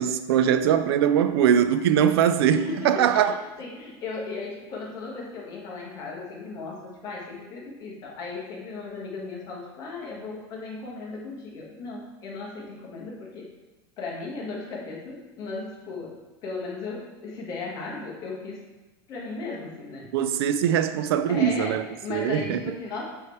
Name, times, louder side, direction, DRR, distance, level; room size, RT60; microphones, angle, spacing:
voice 1, 0.0-3.4 20.1-21.8 22.1-22.6, right 9 dB, 80° right, 0.4 m, -22 dB
voice 2, 2.6-13.5 14.0-16.1 16.4-18.6 19.1-20.1 21.3-23.1, left 3 dB, 30° left, 1.4 m, -36 dB
7.7 x 3.2 x 4.5 m
supercardioid pair, 175°, 13 cm